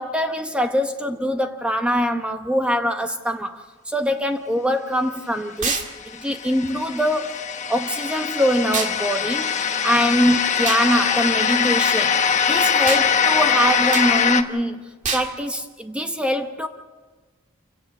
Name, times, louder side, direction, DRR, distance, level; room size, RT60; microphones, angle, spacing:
voice 1, 0.0-12.1 12.5-14.8 15.1-16.7, equal, 5° right, 0.8 m, -23 dB
sound 1, 5.6-5.9 8.7-9.0 10.7-10.9 12.9-13.1 13.9-14.1 15.0-15.3, right 5 dB, 35° right, 2.0 m, -25 dB
sound 2, 6.0-14.4, left 7 dB, 35° left, 1.1 m, -22 dB
28.5 x 16.5 x 6.5 m
head